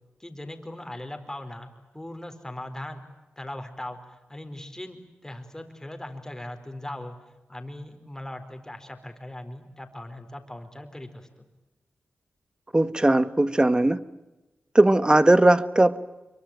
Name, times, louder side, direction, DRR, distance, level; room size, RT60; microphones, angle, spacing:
voice 1, 0.2-3.1 3.4-7.2 7.5-11.3, left 1 dB, 15° left, 6 dB, 4.5 m, -39 dB
voice 2, 12.7-14.0 14.7-16.0, right 1 dB, 20° right, 15 dB, 1.3 m, -19 dB
25.5 x 23.5 x 9.2 m, 1.1 s
cardioid pair, 55°, 4 cm